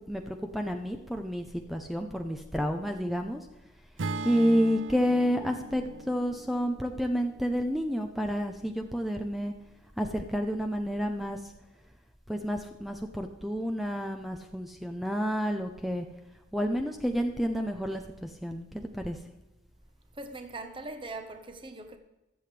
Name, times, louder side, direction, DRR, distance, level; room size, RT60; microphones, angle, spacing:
voice 1, 0.1-3.4 4.2-9.5 10.0-11.5 12.3-16.1 16.5-19.2, equal, ahead, 0.6 m, -30 dB
Acoustic guitar / Strum, 4.0-8.2, right 3 dB, 70° right, 0.6 m, -39 dB
voice 2, 20.1-22.0, right 2 dB, 25° right, 1.0 m, -41 dB
22.0 x 7.7 x 3.3 m
head